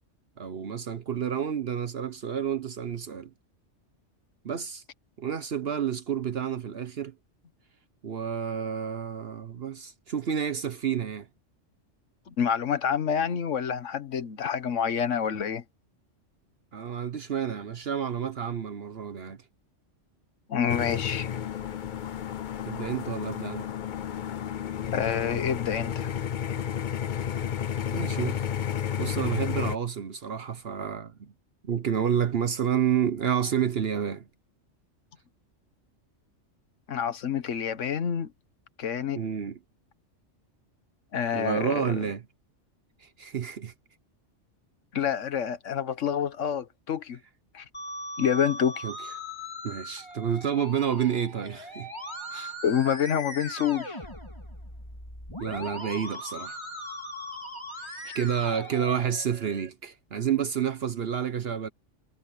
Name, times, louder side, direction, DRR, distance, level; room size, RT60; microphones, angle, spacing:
voice 1, 0.4-3.3 4.4-4.8 5.2-7.1 8.0-11.3 16.7-19.4 22.6-23.7 27.9-28.5 28.9-31.3 31.6-34.3 39.1-39.6 41.3-42.3 43.0-43.7 48.8-49.0 49.6-51.9 52.3-52.5 55.4-56.6 57.8-61.7, right 8 dB, 55° right, 1.0 m, -30 dB
voice 2, 12.3-15.6 20.5-21.3 24.9-26.1 36.9-38.3 38.8-39.2 41.1-41.9 44.9-47.2 47.5-47.6 48.2-48.8 52.6-54.0, left 8 dB, 80° left, 1.5 m, -27 dB
sound 1, 20.7-29.8, left 9 dB, 50° left, 0.7 m, -32 dB
Musical instrument, 47.7-59.7, left 1 dB, 20° left, 4.6 m, -39 dB
omnidirectional pair, 1.3 m